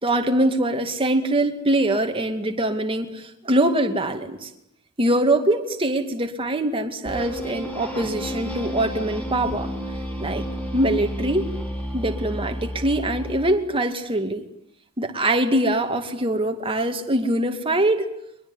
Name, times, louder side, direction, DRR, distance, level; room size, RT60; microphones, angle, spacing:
voice 1, 0.0-4.5 5.0-9.7 10.2-10.5 10.7-11.5 11.9-14.4 15.0-18.1, right 1 dB, 25° right, 5 dB, 2.4 m, -23 dB
sound 1, 7.0-13.6, equal, 5° left, 5.5 m, -31 dB
23.0 x 22.0 x 9.9 m, 0.76 s
head